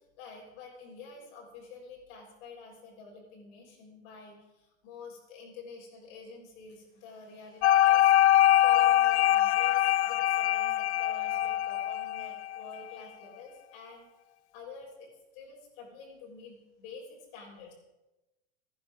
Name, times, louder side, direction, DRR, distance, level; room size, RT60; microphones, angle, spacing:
voice 1, 0.2-14.1 14.5-17.7, left 4 dB, 60° left, -1 dB, 6.8 m, -48 dB
sound 1, 7.6-12.7, left 13 dB, 85° left, 0.5 m, -23 dB
26.5 x 11.0 x 3.8 m, 1.0 s
supercardioid pair, 125°, 32 cm